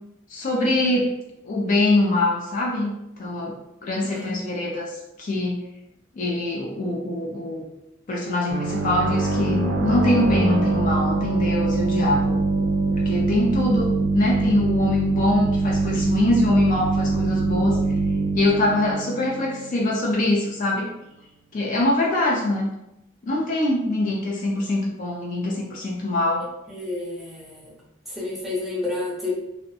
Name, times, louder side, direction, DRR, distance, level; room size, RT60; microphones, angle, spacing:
voice 1, 0.3-1.1 1.4-2.9 3.2-3.6 3.8-5.6 6.2-7.7 8.1-12.4 12.9-17.8 18.3-20.9 21.5-22.8 23.2-26.5, left 2 dB, 40° left, -2 dB, 0.4 m, -23 dB
voice 2, 4.0-4.6 26.7-27.7 28.1-29.3, left 2 dB, ahead, -6 dB, 0.6 m, -30 dB
sound 1, 8.5-20.0, right 3 dB, 60° right, 0.4 m, -23 dB
2.6 x 2.1 x 2.6 m, 0.87 s
head